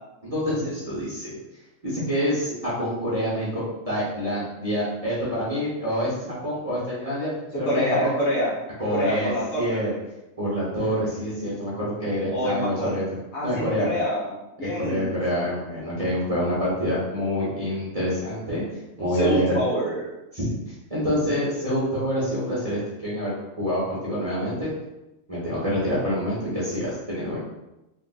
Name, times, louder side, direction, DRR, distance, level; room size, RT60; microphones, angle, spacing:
voice 1, 0.3-1.4 1.8-8.1 8.8-9.3 9.6-9.9 10.4-13.0 13.4-13.9 14.6-19.5 20.3-24.7 25.3-27.4, equal, 30° right, -8 dB, 0.8 m, -27 dB
voice 2, 7.6-8.5 8.9-9.8 12.3-13.0 13.3-15.1 19.1-20.1, equal, 60° left, -6 dB, 1.1 m, -26 dB
3.3 x 2.5 x 2.3 m, 0.96 s
omnidirectional pair, 1.4 m